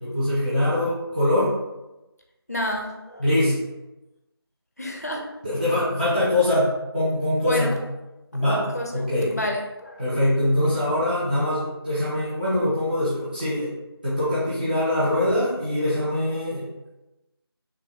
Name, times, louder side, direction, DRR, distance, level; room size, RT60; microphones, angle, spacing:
voice 1, 0.0-1.5 3.2-3.6 5.4-7.8 8.3-8.7 8.9-9.3 10.0-13.7 14.0-16.7, left 1 dB, 20° right, -12 dB, 0.8 m, -23 dB
voice 2, 2.5-3.3 4.8-5.3 7.4-7.7 8.7-8.9 9.3-10.0, left 1 dB, 40° left, 1 dB, 0.5 m, -28 dB
3.3 x 2.3 x 3.5 m, 1.0 s
figure-of-eight pair, 170°, 13 cm